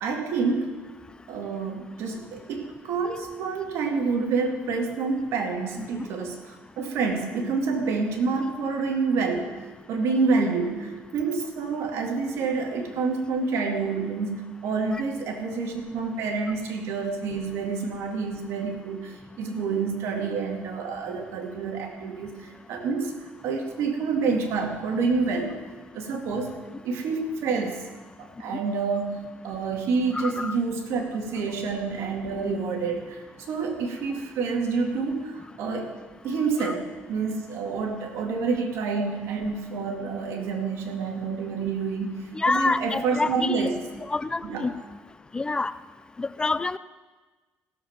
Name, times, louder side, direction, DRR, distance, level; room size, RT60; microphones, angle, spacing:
voice 1, 0.0-0.8 1.3-9.6 9.9-25.6 25.9-26.5 26.8-27.8 28.2-35.9 36.2-43.8 44.4-44.7, right 4 dB, 70° right, 3 dB, 2.1 m, -28 dB
voice 2, 30.1-30.6 36.6-36.7 42.3-43.7 44.1-44.7 45.3-45.7 46.2-46.8, left 3 dB, 20° left, 15 dB, 0.3 m, -27 dB
16.0 x 7.3 x 5.8 m, 1.3 s
cardioid pair, 105°, 5 cm